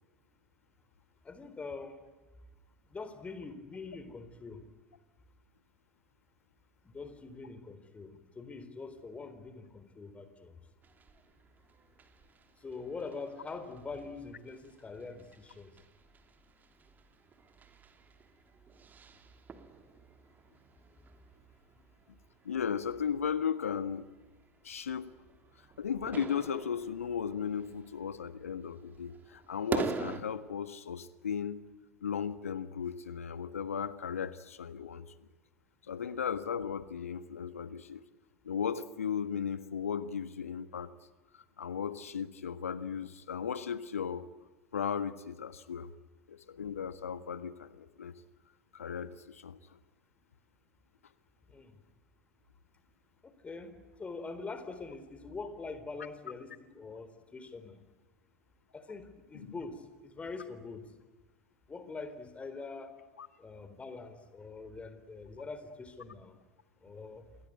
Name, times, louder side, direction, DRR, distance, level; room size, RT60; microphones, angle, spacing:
voice 1, 1.2-2.1 2.9-4.6 6.8-10.5 12.6-15.7 51.5-51.8 53.2-57.8 58.7-60.9 61.7-63.0 63.4-66.3 66.8-67.3, left 4 dB, 15° left, 11 dB, 4.1 m, -44 dB
sound 1, 10.8-30.2, right 5 dB, 25° right, 2.9 m, -45 dB
voice 2, 22.4-24.1 24.6-25.1 25.8-31.6 32.0-35.3 35.9-38.0 38.4-40.9 41.3-44.3 44.7-45.9 46.3-48.1 48.7-49.8 59.3-59.5 63.2-63.3, left 7 dB, 75° left, 13 dB, 1.6 m, -36 dB
28.0 x 22.0 x 9.5 m, 1.3 s
figure-of-eight pair, 85°, 8 cm